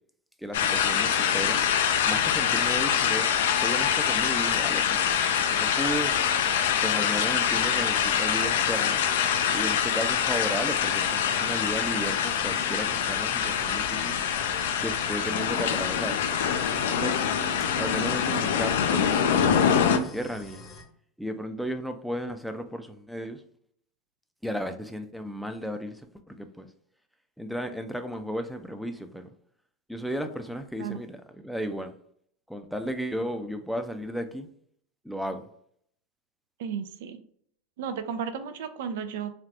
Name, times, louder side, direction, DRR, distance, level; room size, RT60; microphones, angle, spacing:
voice 1, 0.4-1.6 2.1-6.1 6.8-9.0 9.5-14.2 14.8-16.2 16.9-17.2 17.7-20.7 21.2-23.4 24.4-26.7 27.4-29.3 29.9-32.0 32.5-34.5 35.0-35.5, equal, ahead, 0.4 m, -34 dB
sound 1, 0.5-20.0, left 8 dB, 75° left, 0.3 m, -25 dB
sound 2, 3.1-20.8, left 3 dB, 40° left, 0.8 m, -45 dB
voice 2, 36.6-37.2 37.8-39.3, right 7 dB, 75° right, 0.3 m, -33 dB
3.3 x 2.3 x 2.6 m
hypercardioid pair, 100°, 0 cm